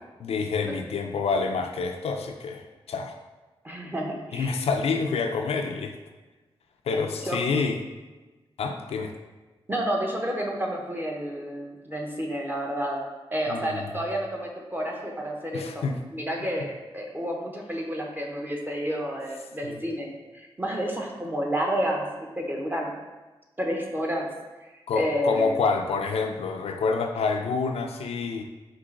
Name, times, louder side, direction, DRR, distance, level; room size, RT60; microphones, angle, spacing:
voice 1, 0.2-3.1 4.3-5.9 6.9-7.8 8.6-9.1 13.5-13.9 15.5-16.0 19.6-19.8 24.9-28.4, left 4 dB, 85° left, 4 dB, 0.4 m, -28 dB
voice 2, 3.6-4.5 6.9-7.4 9.7-15.9 16.1-20.1 20.3-22.9 23.6-24.3 24.6-25.6, equal, 20° right, 0 dB, 0.9 m, -30 dB
4.7 x 2.5 x 3.7 m, 1.2 s
cardioid pair, 60°, 10 cm